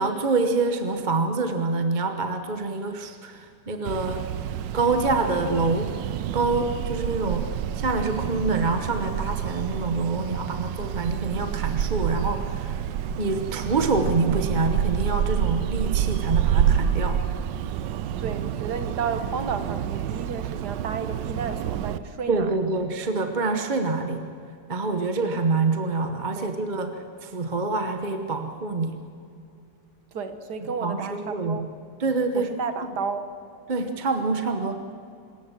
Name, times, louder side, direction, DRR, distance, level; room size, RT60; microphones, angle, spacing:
voice 1, 0.0-4.3 4.7-5.9 6.3-7.5 7.8-12.8 13.2-17.2 22.3-24.2 24.7-26.9 27.2-29.0 30.8-31.6 32.0-32.6 33.7-34.9, right 3 dB, 35° right, 7 dB, 1.0 m, -26 dB
sound 1, 3.9-22.0, right 9 dB, 90° right, 1.4 m, -28 dB
voice 2, 18.2-22.6 25.0-25.2 26.4-26.5 30.1-31.7 32.3-33.3, right 5 dB, 65° right, 8 dB, 1.9 m, -32 dB
26.5 x 14.0 x 7.4 m, 2.5 s
omnidirectional pair, 1.9 m